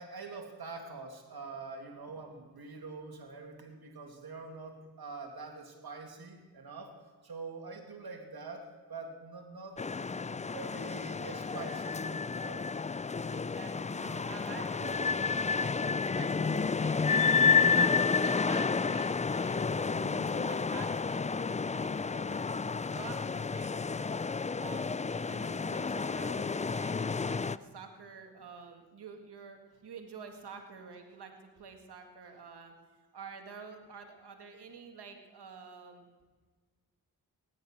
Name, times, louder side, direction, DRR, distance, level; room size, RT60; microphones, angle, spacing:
voice 1, 0.0-7.0 7.2-9.8 10.1-12.7 19.9-20.3, right 4 dB, 70° right, 4 dB, 2.6 m, -45 dB
sound 1, 9.8-27.6, left 5 dB, 20° left, 0.4 m, -30 dB
voice 2, 13.3-19.7 20.0-22.6 22.9-24.1 24.6-32.8 33.1-36.1, right 5 dB, 85° right, 5 dB, 2.0 m, -48 dB
18.0 x 11.0 x 6.4 m, 1.4 s
cardioid pair, 50°, 39 cm